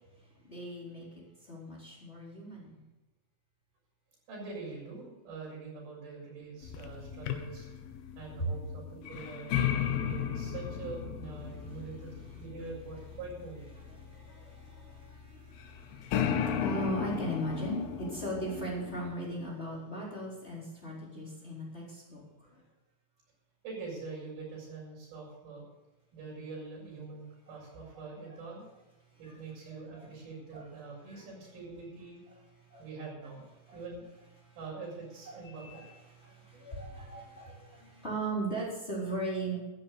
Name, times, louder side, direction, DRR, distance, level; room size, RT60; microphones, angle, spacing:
voice 1, 0.5-1.1 1.4-2.8 8.4-8.5 11.6-11.8 13.9-22.2 22.5-22.6 29.7-30.1 30.5-30.7 31.1-31.2 32.7-32.8 33.7-33.8 34.4-34.6 35.3-39.6, right 1 dB, 15° left, -5 dB, 4.1 m, -38 dB
voice 2, 4.3-7.7 8.2-9.6 10.0-13.7 23.6-25.6 26.1-28.6 29.2-32.2 32.8-33.4 33.7-34.1 34.6-35.8 37.1-37.2, right 4 dB, 85° right, -3 dB, 8.6 m, -44 dB
sound 1, 6.6-19.0, left 9 dB, 85° left, 3.1 m, -35 dB
13.5 x 11.0 x 6.8 m, 1.1 s
omnidirectional pair, 4.2 m